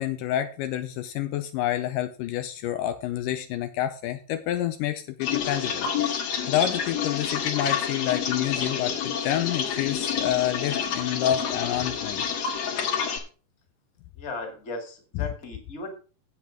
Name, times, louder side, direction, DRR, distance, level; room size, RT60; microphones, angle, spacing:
voice 1, 0.0-12.2, left 12 dB, 80° left, 9 dB, 2.2 m, -28 dB
sound 1, 5.2-13.2, left 7 dB, 55° left, 2.4 m, -28 dB
voice 2, 14.2-15.9, left 2 dB, 25° left, 3 dB, 2.1 m, -36 dB
8.6 x 8.4 x 5.1 m, 0.37 s
omnidirectional pair, 4.0 m